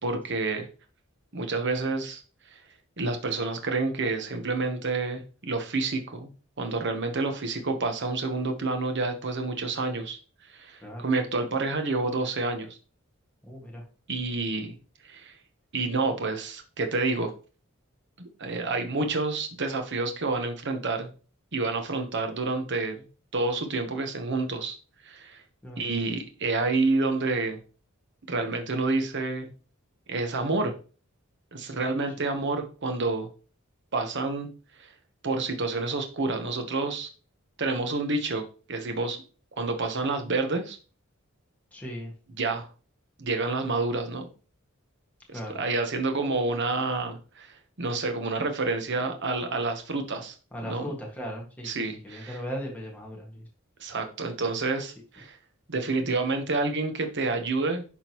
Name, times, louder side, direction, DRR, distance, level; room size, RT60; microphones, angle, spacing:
voice 1, 0.0-0.7 1.3-2.2 2.5-2.6 3.0-6.3 6.6-10.2 10.5-12.7 14.1-14.7 15.0-15.3 15.7-17.3 18.2-21.1 21.5-23.1 23.3-24.7 25.0-25.4 25.8-27.6 28.3-29.5 30.1-30.7 31.5-33.3 33.9-34.5 35.2-37.1 37.6-39.2 39.6-40.8 42.4-42.7 43.2-44.3 45.5-50.3 50.6-51.0 51.6-52.4 53.8-55.4 55.7-57.8, right 3 dB, 60° right, 5 dB, 1.1 m, -28 dB
voice 2, 13.5-13.8 25.6-25.8 41.7-42.1 45.3-45.6 50.5-53.5, equal, 10° left, -2 dB, 1.8 m, -37 dB
11.0 x 3.8 x 3.0 m, 0.36 s
head